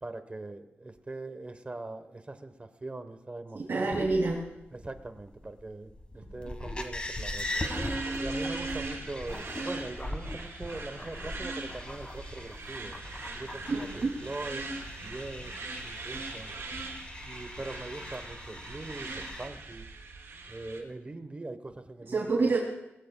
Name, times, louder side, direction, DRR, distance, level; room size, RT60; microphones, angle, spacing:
voice 1, 0.0-4.0 4.7-7.5 8.2-12.9 13.3-14.7 15.0-15.6 15.8-16.5 17.2-19.8 20.5-22.5, right 2 dB, 25° right, 9 dB, 1.1 m, -42 dB
voice 2, 3.5-4.4 6.1-6.3 13.7-14.2 22.1-22.6, right 3 dB, 60° right, -3 dB, 2.6 m, -28 dB
sound 1, 3.9-19.5, left 1 dB, 25° left, 1.5 m, -40 dB
sound 2, 7.0-20.8, right 3 dB, 90° right, 4.0 m, -40 dB
21.5 x 16.0 x 2.3 m, 0.89 s
wide cardioid pair, 120°, 5 cm